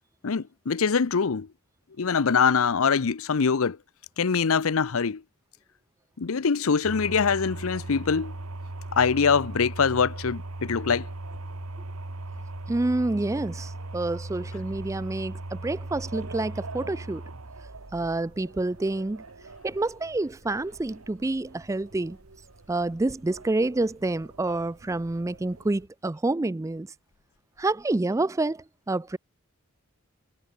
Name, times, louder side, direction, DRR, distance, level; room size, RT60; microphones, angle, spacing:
voice 1, 0.2-1.5 2.0-3.8 4.2-5.2 6.2-8.3 8.9-11.1, left 5 dB, 75° left, 0.7 m, -23 dB
sound 1, 6.8-25.8, right 2 dB, 85° right, 1.6 m, -40 dB
voice 2, 12.7-17.2 17.9-19.2 19.6-22.2 22.7-26.9 27.6-29.2, right 2 dB, 15° right, 0.4 m, -28 dB
head